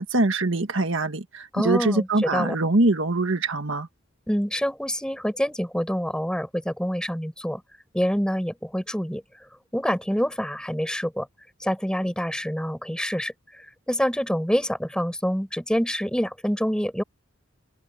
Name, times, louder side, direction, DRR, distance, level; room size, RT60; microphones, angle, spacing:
voice 1, 0.0-3.9, right 2 dB, 65° right, 1.6 m, -23 dB
voice 2, 1.5-2.5 4.3-7.6 7.9-9.2 9.7-11.3 11.6-13.3 13.9-17.0, equal, 5° left, 4.9 m, -26 dB
open air
head